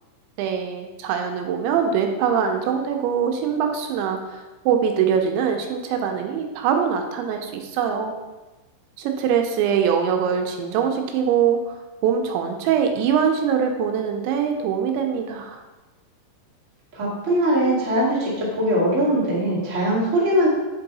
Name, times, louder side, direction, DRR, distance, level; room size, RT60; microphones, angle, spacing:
voice 1, 0.4-8.2 9.0-15.6, right 7 dB, 85° right, 4 dB, 2.8 m, -23 dB
voice 2, 16.9-20.5, right 1 dB, 60° right, -8 dB, 0.7 m, -21 dB
5.7 x 5.3 x 4.0 m, 1.2 s
omnidirectional pair, 5.4 m